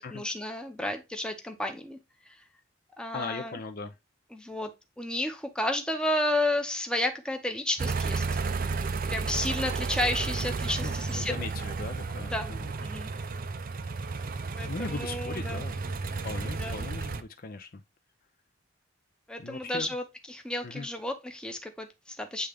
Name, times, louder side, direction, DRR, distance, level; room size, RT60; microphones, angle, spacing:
voice 1, 0.0-2.0 3.0-3.6 4.3-4.7 5.0-8.4 9.1-11.3 12.3-12.5 12.8-13.1 14.6-15.6 16.6-16.8 19.3-22.5, left 1 dB, 5° left, 0.8 m, -32 dB
voice 2, 3.1-4.0 10.8-12.7 14.6-15.8 16.2-17.8 19.4-20.0 20.6-20.9, left 3 dB, 45° left, 0.5 m, -39 dB
sound 1, 7.8-17.2, right 4 dB, 45° right, 0.5 m, -32 dB
8.1 x 3.4 x 3.5 m
head